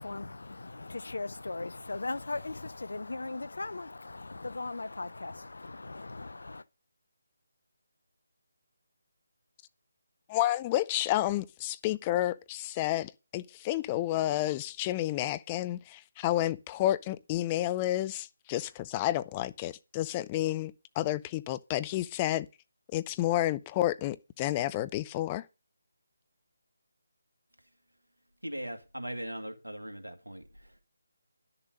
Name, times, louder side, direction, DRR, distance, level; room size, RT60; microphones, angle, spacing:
voice 1, 0.0-6.6, left 3 dB, 65° left, 0.6 m, -38 dB
voice 2, 10.3-22.5 22.9-25.5, left 14 dB, 20° left, 0.4 m, -30 dB
voice 3, 28.4-30.8, right 1 dB, 85° right, 2.0 m, -40 dB
11.0 x 6.8 x 5.3 m
figure-of-eight pair, 150°, 0 cm